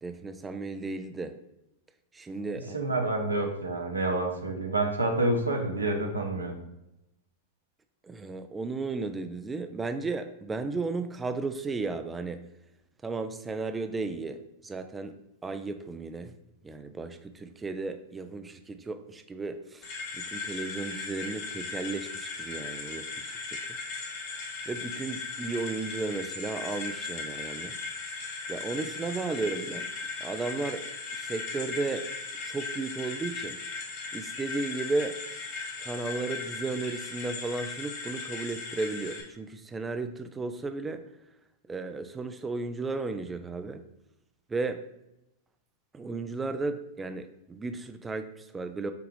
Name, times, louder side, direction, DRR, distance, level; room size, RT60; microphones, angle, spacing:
voice 1, 0.0-1.4 2.1-2.8 8.0-12.5 13.0-15.1 15.4-16.3 16.6-19.9 20.1-23.6 24.7-27.8 28.5-29.9 30.2-30.9 31.1-32.1 32.4-33.6 34.1-35.4 35.8-41.1 41.7-43.8 44.5-44.8 45.9-48.9, right 3 dB, 15° right, 9 dB, 0.3 m, -34 dB
voice 2, 2.7-6.5, right 2 dB, 90° right, 3 dB, 0.8 m, -28 dB
sound 1, 19.8-39.2, left 4 dB, 50° left, 1.5 m, -38 dB
6.7 x 2.4 x 3.2 m, 0.87 s
figure-of-eight pair, 100°, 0 cm